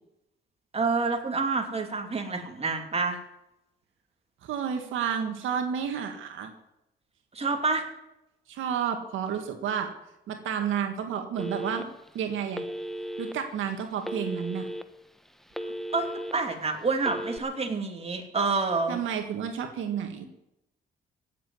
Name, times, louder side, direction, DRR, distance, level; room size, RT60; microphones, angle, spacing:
voice 1, 0.7-3.2 7.3-7.8 15.9-19.0, right 4 dB, 30° right, 4 dB, 2.9 m, -28 dB
voice 2, 4.4-6.5 8.5-9.9 10.3-11.9 12.1-12.6 13.2-14.7 18.9-20.3, right 8 dB, 80° right, 5 dB, 1.8 m, -31 dB
Telephone, 11.4-12.1 12.5-13.3 14.0-14.8 15.2-16.3 17.0-17.4, equal, ahead, 1.1 m, -35 dB
17.0 x 7.6 x 9.6 m, 0.89 s
cardioid pair, 90°, 20 cm